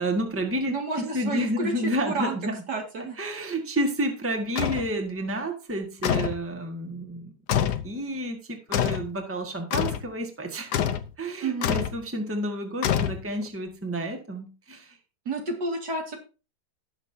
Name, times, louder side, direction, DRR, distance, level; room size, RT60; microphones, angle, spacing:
voice 1, 0.0-2.6 3.2-7.3 7.8-10.7 11.2-15.0, right 1 dB, 10° right, 3 dB, 1.5 m, -30 dB
voice 2, 0.7-1.7 2.1-2.4 2.7-3.2 11.4-11.8 15.3-16.2, right 3 dB, 65° right, 1 dB, 2.8 m, -30 dB
sound 1, 4.6-4.9 6.0-6.4 7.5-7.9 8.7-9.1 9.7-10.1 10.7-11.1 11.6-12.0 12.8-13.5, left 9 dB, 70° left, 1.3 m, -26 dB
18.5 x 6.4 x 2.7 m, 0.33 s
omnidirectional pair, 1.9 m